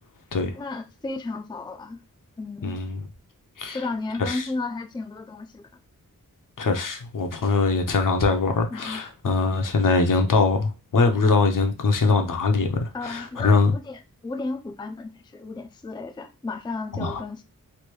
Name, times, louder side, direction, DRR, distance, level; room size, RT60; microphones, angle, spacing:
voice 1, 0.5-2.0 2.4-2.8 3.7-5.7 8.7-9.0 12.9-17.4, left 3 dB, 15° left, 0.4 m, -33 dB
voice 2, 2.6-3.1 3.6-3.8 4.2-4.5 6.6-13.7 16.9-17.2, left 4 dB, 70° left, 0.7 m, -22 dB
3.2 x 2.6 x 3.0 m
wide cardioid pair, 95°, 34 cm